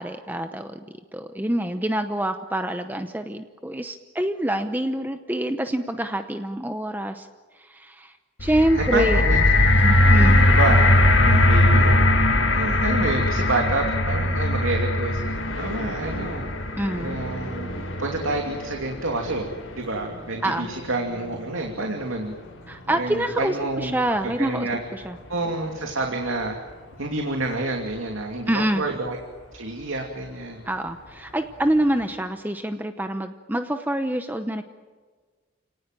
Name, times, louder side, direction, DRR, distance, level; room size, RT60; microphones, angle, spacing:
voice 1, 0.0-7.3 7.6-8.1 8.4-9.2 9.8-10.4 16.8-17.2 20.4-20.7 22.7-25.2 28.5-28.9 30.7-34.6, right 1 dB, 10° right, 7 dB, 0.8 m, -26 dB
sound 1, 8.4-18.6 19.4-19.5, left 1 dB, 60° left, 1.8 m, -20 dB
voice 2, 8.7-9.4 10.0-10.9 11.2-12.0 12.5-16.4 16.9-17.7 18.0-19.5 19.8-22.3 22.9-24.0 24.2-24.8 25.3-26.6 27.0-29.2 29.5-30.6, right 2 dB, 75° right, 2 dB, 2.7 m, -28 dB
sound 2, 15.3-32.1, equal, 75° left, 7.3 m, -42 dB
30.0 x 18.5 x 9.1 m, 1.5 s
head